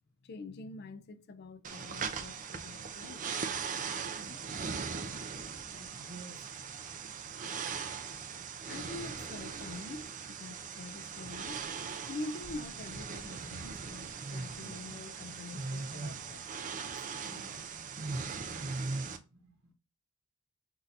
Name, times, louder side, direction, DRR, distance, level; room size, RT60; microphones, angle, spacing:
voice 1, 0.2-3.3 8.6-11.8 12.1-16.6, left 2 dB, 50° left, 0.4 m, -45 dB
sound 1, 1.6-19.2, right 5 dB, 35° right, 0.5 m, -39 dB
voice 2, 3.4-8.0 16.6-18.4 19.0-19.7, right 2 dB, 70° right, 1.4 m, -56 dB
6.0 x 2.6 x 2.6 m
head